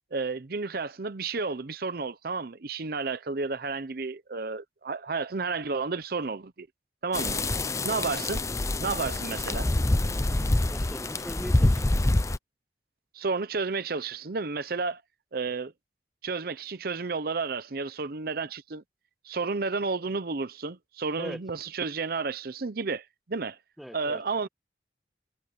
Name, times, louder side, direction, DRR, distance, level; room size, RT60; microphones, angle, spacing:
voice 1, 0.1-6.7 7.0-7.4 7.8-8.4 8.8-9.7 13.1-15.0 15.3-15.7 16.2-18.8 19.2-23.6 23.9-24.5, right 4 dB, 55° right, 0.7 m, -31 dB
sound 1, 7.1-12.4, left 2 dB, 15° left, 0.5 m, -26 dB
voice 2, 10.7-11.9 21.2-21.4 23.8-24.2, equal, ahead, 1.3 m, -40 dB
head